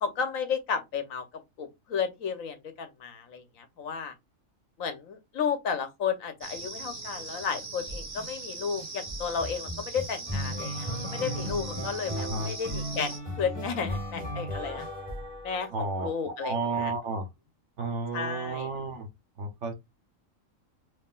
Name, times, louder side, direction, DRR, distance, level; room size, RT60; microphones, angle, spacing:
voice 1, 0.0-4.1 4.8-14.9 15.4-16.9 18.1-18.7, left 6 dB, 90° left, 1.3 m, -33 dB
sound 1, 6.4-13.2, right 3 dB, 30° right, 1.1 m, -40 dB
sound 2, 7.9-8.3 8.8-16.0, equal, 5° left, 2.3 m, -36 dB
voice 2, 12.2-12.5 15.7-16.1 16.4-17.3 17.8-19.1 19.4-19.7, right 3 dB, 65° right, 1.1 m, -32 dB
5.5 x 3.1 x 2.4 m
omnidirectional pair, 1.4 m